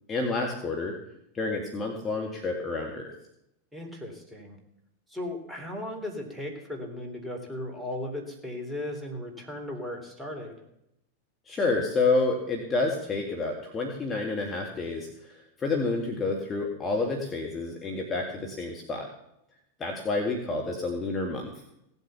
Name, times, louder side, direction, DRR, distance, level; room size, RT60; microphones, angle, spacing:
voice 1, 0.1-0.9 1.3-3.1 11.5-15.3 15.6-19.1 19.8-21.5, left 3 dB, 20° left, 1 dB, 2.1 m, -29 dB
voice 2, 3.7-4.6 5.1-10.6, left 1 dB, 5° right, 1 dB, 3.6 m, -36 dB
17.5 x 8.1 x 7.1 m, 0.80 s
figure-of-eight pair, 90°, 0 cm